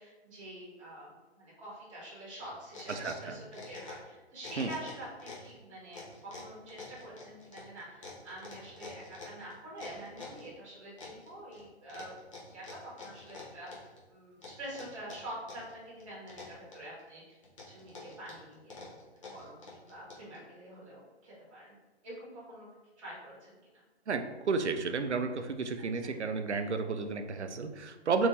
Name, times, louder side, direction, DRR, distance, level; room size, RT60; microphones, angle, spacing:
voice 1, 0.0-12.2 12.5-17.4 17.7-18.9 19.3-21.7 22.0-22.7 23.0-23.8 25.9-26.1, right 1 dB, 30° right, -7 dB, 1.1 m, -46 dB
sound 1, 2.4-4.1 4.4-5.5 5.9-10.5 11.0-11.6 11.9-14.0 14.4-15.7 16.0-17.0 17.4-20.4, left 3 dB, 30° left, 0.7 m, -47 dB
voice 2, 3.0-3.4 4.6-4.7 24.1-28.3, right 4 dB, 85° right, 7 dB, 0.5 m, -32 dB
3.5 x 2.6 x 3.2 m, 1.2 s
figure-of-eight pair, 135°, 33 cm